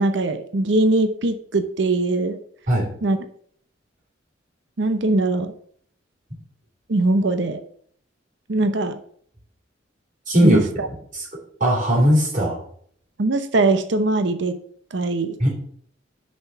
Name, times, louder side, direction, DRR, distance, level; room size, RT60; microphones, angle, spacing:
voice 1, 0.0-2.4 3.0-3.2 4.8-5.5 6.9-7.6 8.5-9.0 10.4-10.9 13.2-14.6 14.9-15.4, right 2 dB, 65° right, 8 dB, 0.7 m, -21 dB
voice 2, 10.3-10.6 11.1-11.3 11.6-12.6 15.4-15.5, equal, 40° right, -4 dB, 3.3 m, -18 dB
6.8 x 5.2 x 7.1 m, 0.62 s
head